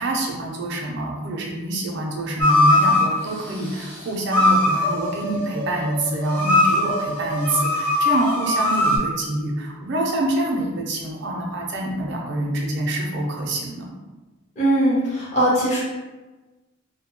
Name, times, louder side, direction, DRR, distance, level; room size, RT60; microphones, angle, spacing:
voice 1, 0.0-13.9, right 1 dB, 55° right, -1 dB, 0.5 m, -26 dB
sound 1, 2.4-3.1 4.3-9.0, left 1 dB, 10° left, 0.4 m, -20 dB
voice 2, 14.6-15.8, right 1 dB, 35° left, -9 dB, 0.8 m, -20 dB
2.6 x 2.1 x 2.9 m, 1.2 s
head